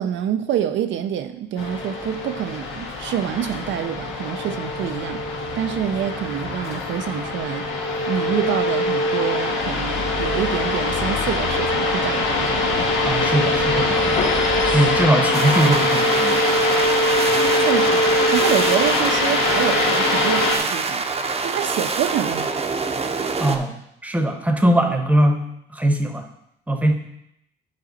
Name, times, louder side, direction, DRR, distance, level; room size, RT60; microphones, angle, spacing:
voice 1, 0.0-5.2 5.6-7.6 8.1-12.8 17.6-21.1 21.4-22.5, right 10 dB, 70° right, 8 dB, 0.5 m, -26 dB
sound 1, 1.6-20.6, left 1 dB, 90° left, 1.4 m, -22 dB
sound 2, 9.6-15.1, left 4 dB, 40° left, 0.8 m, -31 dB
voice 2, 13.0-14.2 14.7-16.4 23.4-23.7 24.0-25.4 25.7-26.3 26.7-26.9, right 1 dB, 5° right, 5 dB, 0.9 m, -20 dB
sound 3, 15.3-23.6, right 4 dB, 30° right, 0.7 m, -26 dB
9.4 x 4.0 x 4.0 m, 0.79 s
cardioid pair, 90°, 20 cm